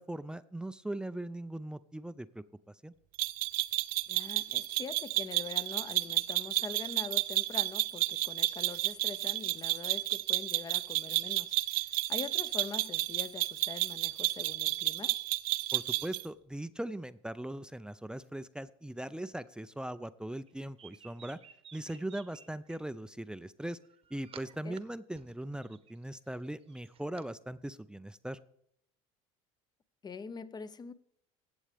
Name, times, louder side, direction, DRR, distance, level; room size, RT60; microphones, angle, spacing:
voice 1, 0.0-2.4 2.8-2.9 15.7-21.4 21.7-23.8 24.1-28.4, right 1 dB, 5° right, 0.4 m, -40 dB
sound 1, 3.2-16.2, right 19 dB, 65° right, 0.5 m, -32 dB
voice 2, 4.1-15.2 24.6-24.8 30.0-30.9, left 5 dB, 25° left, 0.7 m, -44 dB
sound 2, 20.5-22.8 23.6-24.8 25.1-27.3, right 8 dB, 40° right, 0.9 m, -55 dB
14.5 x 8.1 x 3.4 m
supercardioid pair, 100°, 16 cm